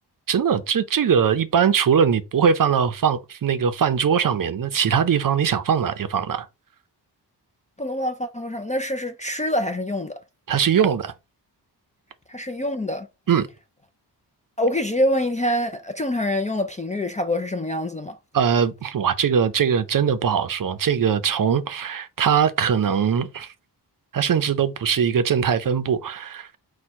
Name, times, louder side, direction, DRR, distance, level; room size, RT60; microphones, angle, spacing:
voice 1, 0.3-6.5 10.5-11.1 13.3-13.5 18.3-23.5 24.1-26.6, right 7 dB, 50° right, 0.6 m, -21 dB
voice 2, 7.8-10.2 12.3-13.1 14.6-18.2, left 1 dB, 20° left, 0.3 m, -25 dB
4.3 x 2.3 x 4.6 m
wide cardioid pair, 125°, 41 cm